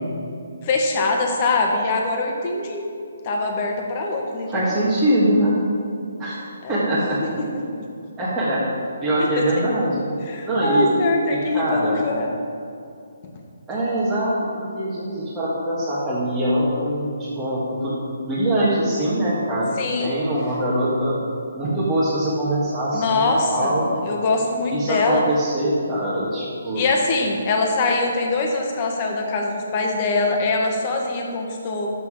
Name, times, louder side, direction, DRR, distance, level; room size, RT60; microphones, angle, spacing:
voice 1, 0.6-2.9 3.2-4.9 6.6-6.8 7.4-7.5 9.4-9.5 10.2-12.3 19.8-20.2 22.9-25.2 26.7-31.9, left 3 dB, 30° left, 1 dB, 1.5 m, -23 dB
voice 2, 4.5-5.6 6.2-6.4 6.7-7.2 8.2-8.6 9.0-10.0 10.4-11.0 11.3-12.1 13.7-18.0 18.3-19.7 20.0-21.2 21.5-24.0 24.7-26.8, right 1 dB, 10° right, -10 dB, 1.7 m, -23 dB
11.0 x 7.9 x 4.9 m, 2.5 s
hypercardioid pair, 165°, 0 cm